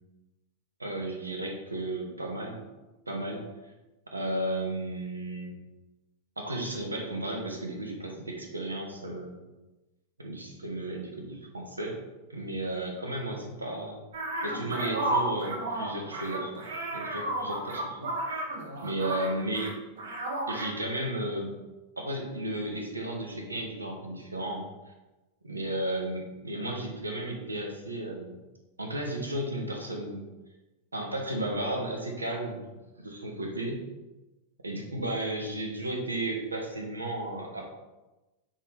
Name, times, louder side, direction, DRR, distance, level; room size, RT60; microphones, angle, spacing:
voice 1, 0.8-2.6 3.1-3.4 4.1-5.5 6.4-9.4 10.2-12.0 12.3-14.0 14.4-16.6 16.9-18.1 18.8-19.8 20.5-21.5 22.0-24.7 25.4-28.4 28.8-30.2 30.9-32.6 33.0-33.8 34.6-37.6, right 1 dB, 80° right, 1 dB, 1.3 m, -34 dB
sound 1, 14.1-19.7 20.0-20.7, right 1 dB, 65° right, 1.2 m, -32 dB
6.3 x 5.6 x 3.3 m, 1.1 s
figure-of-eight pair, 90°, 0 cm